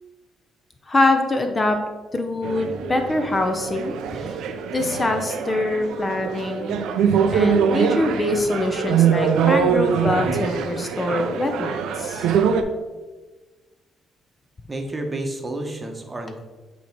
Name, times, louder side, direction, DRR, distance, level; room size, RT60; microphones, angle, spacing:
voice 1, 0.9-1.8 2.1-4.4 4.7-6.8 7.3-12.3, left 2 dB, 25° left, 5 dB, 0.7 m, -24 dB
sound 1, 2.4-12.6, right 7 dB, 85° right, 0.5 m, -23 dB
voice 2, 14.7-16.4, right 1 dB, 20° right, 3 dB, 1.0 m, -30 dB
8.3 x 3.0 x 4.5 m, 1.2 s
cardioid pair, 90°, 0 cm